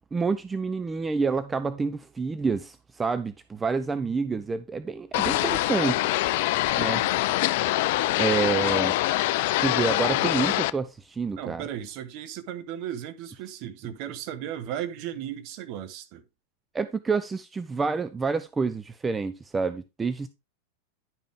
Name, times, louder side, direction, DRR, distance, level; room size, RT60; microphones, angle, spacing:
voice 1, 0.1-6.1 6.8-7.3 8.2-8.9 9.6-11.6 16.7-20.3, right 4 dB, 15° right, 0.4 m, -28 dB
sound 1, 5.1-10.7, left 16 dB, 50° left, 0.4 m, -24 dB
voice 2, 6.7-7.1 11.4-16.2, right 10 dB, 45° right, 1.1 m, -36 dB
10.5 x 5.1 x 3.5 m
figure-of-eight pair, 90°, 0 cm